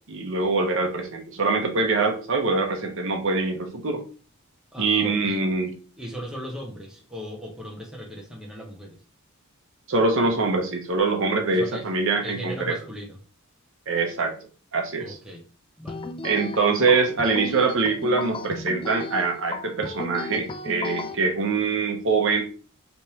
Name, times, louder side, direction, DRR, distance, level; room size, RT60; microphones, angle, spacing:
voice 1, 0.1-4.0 4.8-5.7 9.9-12.7 13.9-14.3 14.7-15.2 16.2-22.4, right 3 dB, 60° right, 2 dB, 0.8 m, -24 dB
voice 2, 4.7-5.4 6.0-9.0 11.5-11.9 12.2-13.2 15.0-15.4 15.8-16.0, equal, 5° right, -1 dB, 0.7 m, -37 dB
sound 1, 15.9-21.1, left 2 dB, 25° left, 0.3 m, -35 dB
3.4 x 3.0 x 2.8 m, 0.36 s
head